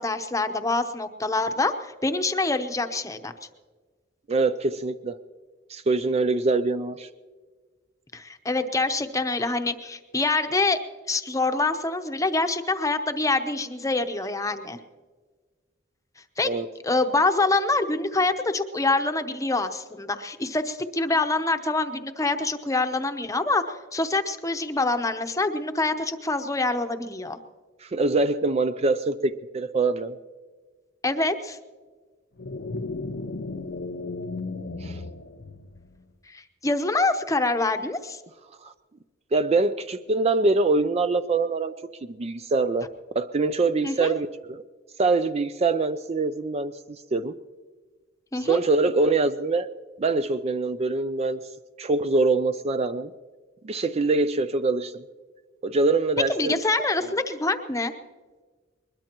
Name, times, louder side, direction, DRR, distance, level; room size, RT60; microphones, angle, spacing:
voice 1, 0.0-1.7 2.0-3.3 8.1-10.8 11.1-14.8 16.4-16.6 16.8-27.4 31.0-31.6 36.3-38.2 43.8-44.1 48.3-48.6 56.3-57.9, left 3 dB, 15° left, 8 dB, 0.8 m, -25 dB
voice 2, 4.3-5.2 5.7-7.1 16.4-16.7 27.8-30.2 34.8-35.0 38.6-38.7 39.3-41.7 42.1-42.9 43.1-44.6 45.0-46.7 47.1-47.3 48.4-49.7 50.0-51.4 51.8-53.1 53.6-55.0 55.6-56.6, right 3 dB, 35° right, 11 dB, 0.4 m, -24 dB
sound 1, 32.4-36.1, left 3 dB, 60° left, 0.7 m, -34 dB
21.5 x 21.0 x 3.0 m, 1.4 s
head